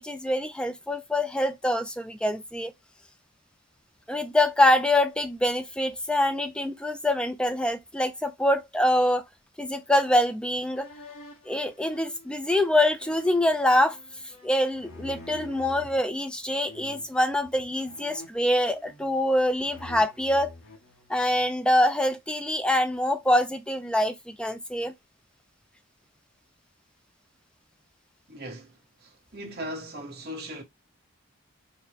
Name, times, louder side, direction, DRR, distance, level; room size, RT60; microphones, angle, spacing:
voice 1, 0.0-2.7 4.1-9.2 9.6-10.9 11.5-14.0 14.4-20.5 21.1-24.9, left 1 dB, 5° left, 0.3 m, -25 dB
sound 1, 10.7-16.0 16.6-17.2 17.8-19.3 19.6-21.6, left 2 dB, 70° left, 1.0 m, -47 dB
voice 2, 28.3-30.6, equal, 45° right, 1.3 m, -39 dB
4.2 x 2.1 x 3.3 m
head